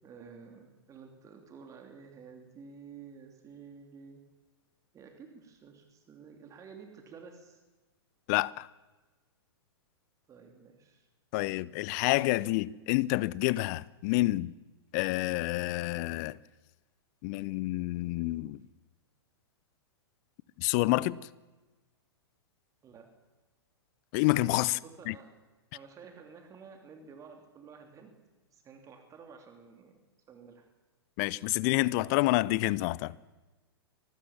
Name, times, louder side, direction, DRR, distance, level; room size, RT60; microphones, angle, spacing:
voice 1, 0.0-4.2 4.9-7.6 10.3-11.1 22.8-23.1 24.8-25.3 25.7-28.1 28.5-30.0 30.3-30.7, right 6 dB, 25° right, 3.2 m, -51 dB
voice 2, 8.3-8.7 11.3-14.5 14.9-16.4 17.2-18.6 20.6-21.2 24.1-24.8 25.1-25.2 31.2-33.2, left 19 dB, 40° left, 0.7 m, -28 dB
24.0 x 18.5 x 7.4 m
figure-of-eight pair, 105°, 14 cm